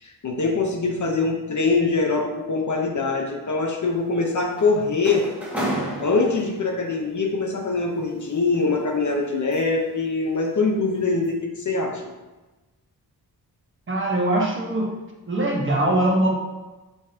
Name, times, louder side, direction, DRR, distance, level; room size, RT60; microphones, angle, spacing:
voice 1, 0.0-5.3 6.0-12.0, left 3 dB, 50° left, 1 dB, 1.0 m, -23 dB
sound 1, 3.9-6.8 8.0-9.9 10.3-10.6 11.0-11.3, right 1 dB, 5° right, 2.1 m, -33 dB
voice 2, 13.9-15.0 15.3-16.3, right 1 dB, 30° right, -1 dB, 1.3 m, -22 dB
8.3 x 5.8 x 2.9 m, 1.1 s
wide cardioid pair, 145°, 39 cm